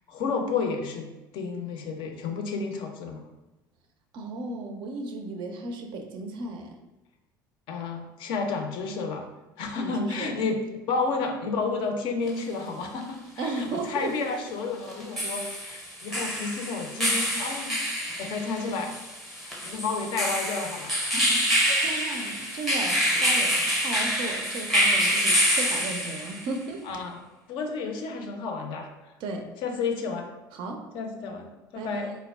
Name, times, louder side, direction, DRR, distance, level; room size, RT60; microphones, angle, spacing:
voice 1, 0.1-1.1 1.3-3.2 7.7-9.3 9.6-10.6 10.9-17.8 18.2-19.0 19.4-22.6 26.8-27.2 27.5-28.9 29.6-30.3 30.9-32.2, left 4 dB, 50° left, 3 dB, 0.4 m, -31 dB
voice 2, 4.1-6.8 9.7-10.4 13.4-14.2 21.8-26.8 29.2-29.5 30.5-30.8 31.7-32.1, right 3 dB, 45° right, 4 dB, 0.4 m, -35 dB
sound 1, 12.3-12.4 14.9-26.5, equal, ahead, 0.6 m, -26 dB
3.2 x 2.0 x 2.2 m, 1.0 s
figure-of-eight pair, 65°, 11 cm